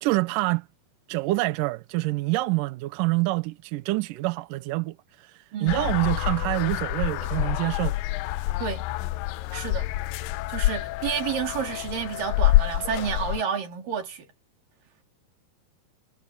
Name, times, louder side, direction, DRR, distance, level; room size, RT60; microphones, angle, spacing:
voice 1, 0.0-0.7 1.1-8.0, right 21 dB, 80° right, 2.0 m, -26 dB
voice 2, 5.5-5.9 8.6-8.8 9.5-9.9 10.5-14.3, right 7 dB, 60° right, 4.5 m, -30 dB
sound 1, 5.7-13.4, left 16 dB, 85° left, 2.0 m, -27 dB
omnidirectional pair, 4.5 m